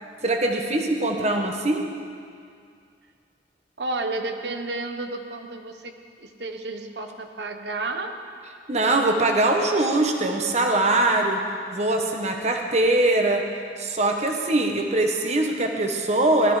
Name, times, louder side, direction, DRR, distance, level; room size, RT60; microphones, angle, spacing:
voice 1, 0.2-1.8 8.7-11.4 11.7-13.4 13.8-16.6, right 2 dB, 40° right, 3 dB, 1.2 m, -22 dB
voice 2, 3.8-5.9 6.2-8.1 14.0-14.9, right 2 dB, 65° right, 5 dB, 1.1 m, -32 dB
17.5 x 13.0 x 4.9 m, 2.3 s
head